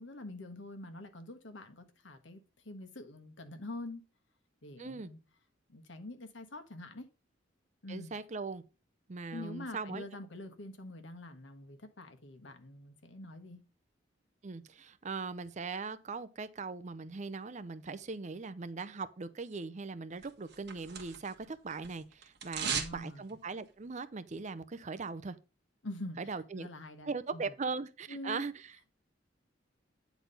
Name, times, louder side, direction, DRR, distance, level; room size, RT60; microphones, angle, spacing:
voice 1, 0.0-4.0 4.6-5.2 5.7-7.1 7.8-8.1 9.3-13.6 22.6-23.2 25.8-26.2 26.6-27.5 28.1-28.5, left 1 dB, 70° left, 1.4 m, -45 dB
voice 2, 4.8-5.1 7.9-8.6 9.1-10.1 14.4-25.4 26.2-26.7 27.1-28.8, right 4 dB, 40° right, 0.5 m, -40 dB
sound 1, 20.2-21.4 21.7-23.0 23.3-23.4, right 6 dB, 60° right, 1.6 m, -37 dB
9.5 x 4.1 x 5.3 m
head